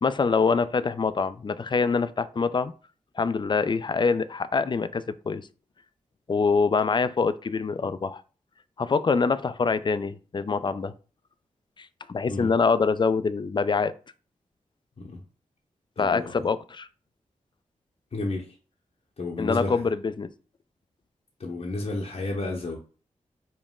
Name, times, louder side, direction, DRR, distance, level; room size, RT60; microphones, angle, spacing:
voice 1, 0.0-2.7 3.2-5.5 6.3-8.2 8.8-10.9 11.8-13.9 16.0-16.9 19.4-20.3, left 4 dB, 35° left, 14 dB, 0.4 m, -25 dB
voice 2, 16.0-16.4 18.1-18.5 19.2-19.8 21.4-22.8, left 2 dB, 55° left, -1 dB, 0.8 m, -32 dB
5.1 x 2.1 x 3.6 m, 0.37 s
cardioid pair, 45°, 14 cm